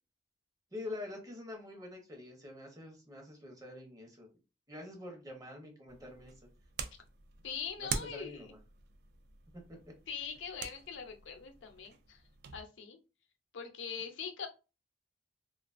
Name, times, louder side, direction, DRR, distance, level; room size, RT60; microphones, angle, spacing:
voice 1, 0.7-4.3 4.7-6.3 7.8-8.6, left 2 dB, 20° right, 1 dB, 0.7 m, -46 dB
sound 1, 5.9-12.6, right 6 dB, 60° right, 0.3 m, -45 dB
voice 2, 7.4-8.5 10.1-12.2 12.5-13.0 13.5-14.5, left 6 dB, 90° left, 6 dB, 0.5 m, -42 dB
2.3 x 2.3 x 2.4 m, 0.30 s
head